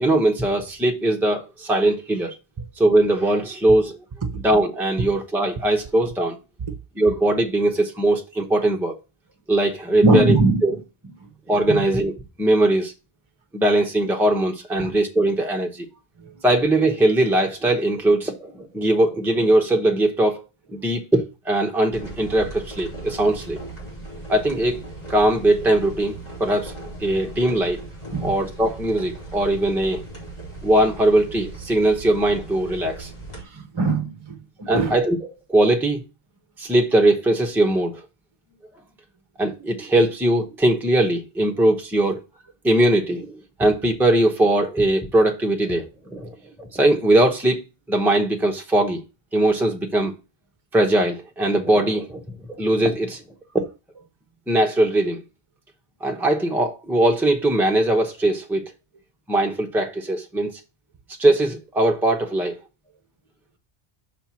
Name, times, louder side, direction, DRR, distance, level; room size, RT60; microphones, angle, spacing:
voice 1, 0.0-2.3 2.8-4.0 4.4-6.4 7.0-9.0 9.5-10.4 10.6-10.7 11.5-12.1 12.4-12.9 13.5-15.9 16.4-20.4 20.7-23.6 24.3-24.8 25.1-26.7 27.0-27.8 28.2-30.0 30.6-33.1 34.7-35.2 35.5-36.0 36.6-38.0 39.4-42.2 42.6-47.6 47.9-49.0 49.3-50.1 50.7-52.2 52.6-53.2 54.5-55.2 56.0-58.7 59.3-60.6 61.2-62.6, right 1 dB, ahead, 0.8 m, -20 dB
voice 2, 10.0-10.6 11.2-11.3 11.7-11.9 14.7-14.9 16.2-16.4 28.1-28.3 33.4-35.0, right 2 dB, 30° right, 0.8 m, -21 dB
sound 1, 21.9-33.4, right 2 dB, 40° left, 2.7 m, -37 dB
5.9 x 4.5 x 5.7 m
omnidirectional pair, 1.0 m